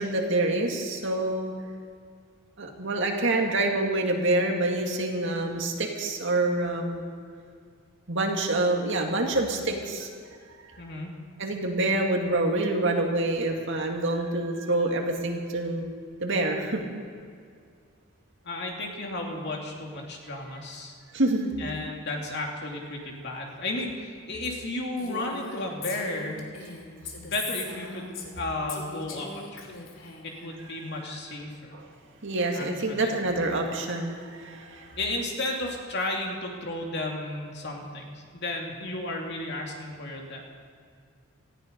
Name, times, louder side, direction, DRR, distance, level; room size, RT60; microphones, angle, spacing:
voice 1, 0.0-1.5 2.6-7.0 8.1-10.1 11.4-15.9 16.2-16.8 21.1-21.5 31.7-31.9 32.2-35.0, right 2 dB, 65° right, 2 dB, 2.2 m, -27 dB
voice 2, 10.8-11.1 18.4-20.9 21.6-26.5 27.2-28.1 28.4-29.7 30.2-31.7 32.5-33.1 35.0-40.4, left 2 dB, 55° left, 0 dB, 2.6 m, -33 dB
Female speech woman speaking, 25.0-28.4 28.7-30.5, left 4 dB, 80° left, 2.6 m, -40 dB
18.5 x 14.5 x 5.3 m, 2.2 s
head